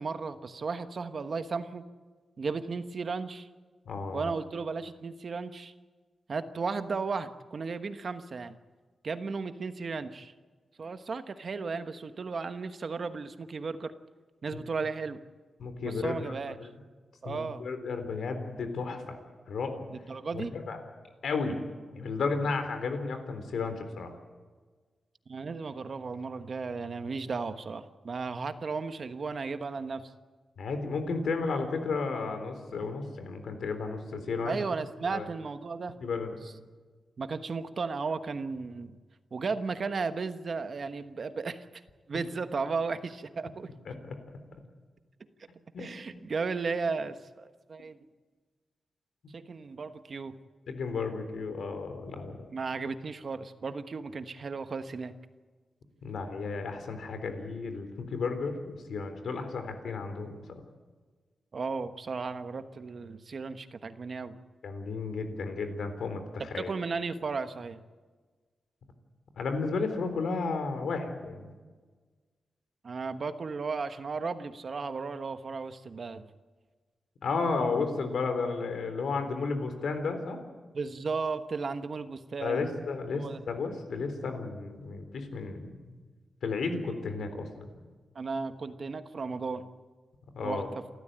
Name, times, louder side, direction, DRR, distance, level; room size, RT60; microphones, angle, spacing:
voice 1, 0.0-1.8 2.4-3.5 4.1-5.7 6.3-8.6 9.0-10.3 10.8-13.9 14.4-15.2 15.8-16.6 17.2-17.6 19.9-20.6 25.3-30.1 34.4-35.9 37.2-38.9 39.3-41.6 42.1-43.7 45.8-48.0 49.3-50.4 52.5-55.1 61.5-64.4 66.6-67.8 72.8-76.2 80.7-82.7 83.2-83.4 88.1-89.7 90.4-90.8, right 4 dB, 45° right, 10 dB, 1.2 m, -35 dB
voice 2, 3.9-4.3 15.6-16.3 16.6-16.7 17.3-19.2 19.5-19.9 20.3-20.8 21.2-21.6 21.9-24.1 30.6-34.6 35.0-35.3 36.0-36.4 43.9-44.1 45.7-46.2 50.7-52.4 56.0-60.6 64.6-66.7 69.4-71.5 77.2-80.4 82.4-85.9 86.4-87.7 90.3-90.7, left 4 dB, 80° left, 8 dB, 3.7 m, -33 dB
28.0 x 14.0 x 9.0 m, 1.4 s
wide cardioid pair, 140°, 0 cm